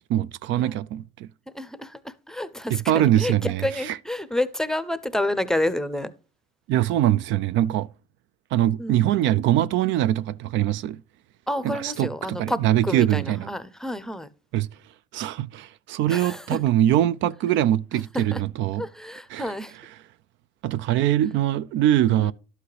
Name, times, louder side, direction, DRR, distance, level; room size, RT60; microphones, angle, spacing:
voice 1, 0.1-1.3 2.7-4.0 6.7-7.9 8.5-11.0 11.6-13.5 14.5-14.7 15.1-18.8 19.3-19.5 20.6-22.3, right 12 dB, 70° right, 0.5 m, -23 dB
voice 2, 1.5-6.1 8.8-9.4 11.5-14.3 16.1-16.6 18.1-18.4 18.8-19.8 22.2-22.3, left 1 dB, 5° left, 0.6 m, -29 dB
12.5 x 8.2 x 3.2 m
cardioid pair, 160°, 20 cm